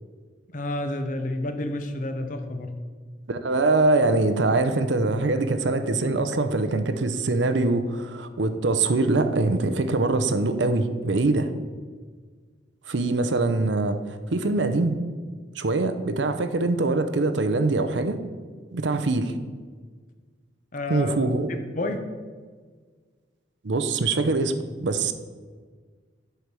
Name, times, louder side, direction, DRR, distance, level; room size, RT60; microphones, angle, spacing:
voice 1, 0.5-2.7 20.7-21.2 21.5-22.0, left 1 dB, 45° left, 7 dB, 0.8 m, -30 dB
voice 2, 3.3-11.5 12.9-14.9 15.6-18.2 18.7-19.3 20.9-21.5 23.6-24.5 24.8-25.1, right 3 dB, 80° right, 10 dB, 0.7 m, -23 dB
8.2 x 4.6 x 6.8 m, 1.5 s
head